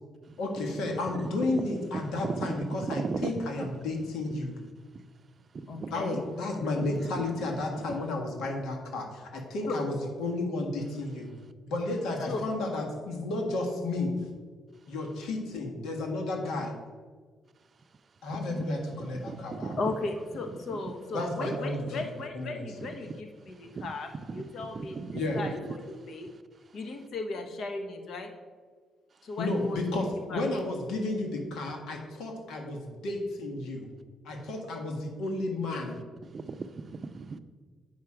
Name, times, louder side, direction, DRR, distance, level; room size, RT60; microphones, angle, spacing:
voice 1, 0.4-4.5 5.9-11.3 11.7-14.1 14.9-16.7 18.2-19.7 21.1-22.7 25.1-25.4 29.4-33.9 34.2-36.0, left 2 dB, 85° left, 1.6 m, -32 dB
voice 2, 1.4-3.7 4.9-5.1 5.5-5.9 6.8-7.3 7.8-8.0 10.8-11.2 14.8-14.9 17.8-18.4 19.0-20.0 20.7-20.9 21.4-21.6 22.8-23.0 23.5-23.9 24.3-25.5 26.0-26.8 29.1-29.3 36.2-37.4, right 4 dB, 40° right, 0.5 m, -38 dB
voice 3, 5.7-6.2 9.7-9.8 12.2-12.4 18.3-18.7 19.8-24.1 24.3-25.0 25.3-26.3 26.7-28.3 29.2-29.8 30.3-30.4, left 3 dB, 65° left, 1.2 m, -36 dB
8.1 x 5.7 x 5.0 m
cardioid pair, 90°, 0 cm